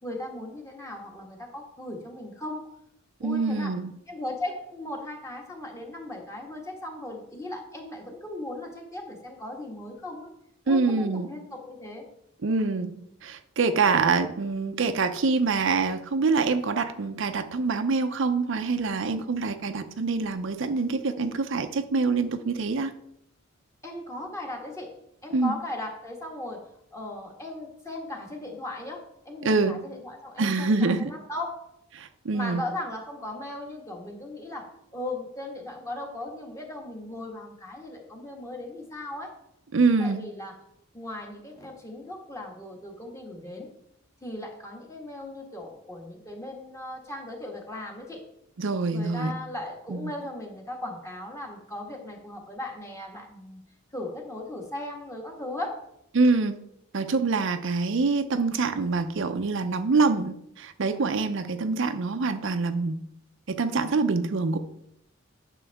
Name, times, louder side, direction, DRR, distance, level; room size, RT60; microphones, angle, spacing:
voice 1, 0.0-2.7 3.2-3.8 4.1-10.3 10.7-12.1 23.8-25.0 25.2-31.7 32.3-39.4 40.0-40.6 40.9-43.7 44.2-48.2 48.9-53.6 53.9-55.9, left 1 dB, 15° left, 1 dB, 1.5 m, -37 dB
voice 2, 3.2-3.9 10.7-11.3 12.4-22.9 25.3-25.6 29.4-29.8 30.4-31.1 31.9-32.6 39.7-40.2 48.6-49.4 49.9-50.1 56.1-56.5 56.9-63.0 63.5-64.6, right 4 dB, 65° right, 9 dB, 0.6 m, -25 dB
9.9 x 6.4 x 3.5 m, 0.76 s
head